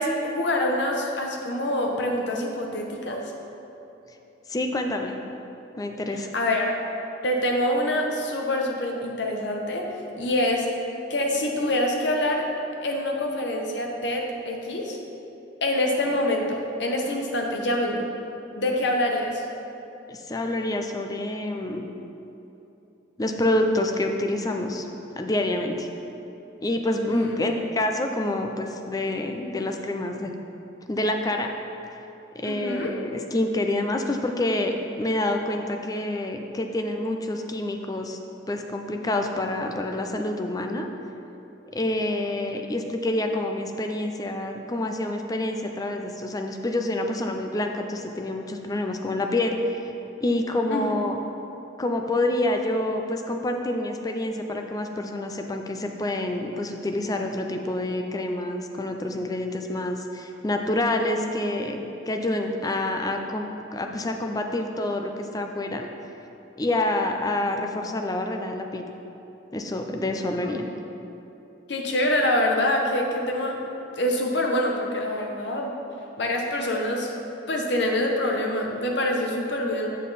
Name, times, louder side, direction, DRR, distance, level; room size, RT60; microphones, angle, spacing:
voice 1, 0.0-3.3 6.3-6.8 7.2-9.9 10.1-10.7 11.1-12.5 12.8-15.0 15.6-18.0 18.6-19.5 27.1-27.3 32.4-33.0 50.7-50.9 70.4-70.5 71.7-73.6 74.0-75.8 76.2-77.1 77.5-79.9, left 1 dB, 65° left, 1 dB, 0.9 m, -25 dB
voice 2, 4.5-5.2 5.8-6.3 20.1-21.9 23.2-24.9 25.1-25.9 26.6-30.3 30.9-31.5 32.3-38.2 38.5-40.9 41.7-49.9 50.2-51.2 51.8-65.9 66.6-68.8 69.5-70.7, left 1 dB, 20° left, 4 dB, 0.4 m, -27 dB
7.4 x 5.9 x 4.1 m, 3.0 s
head